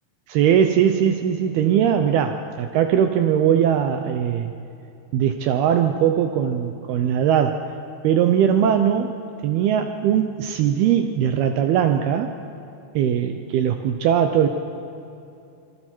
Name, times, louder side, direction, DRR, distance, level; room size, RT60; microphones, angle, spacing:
voice 1, 0.3-4.5 5.1-7.7 8.0-12.3 13.0-14.5, right 9 dB, 75° right, 7 dB, 2.5 m, -20 dB
26.5 x 24.5 x 4.5 m, 2.7 s
omnidirectional pair, 4.9 m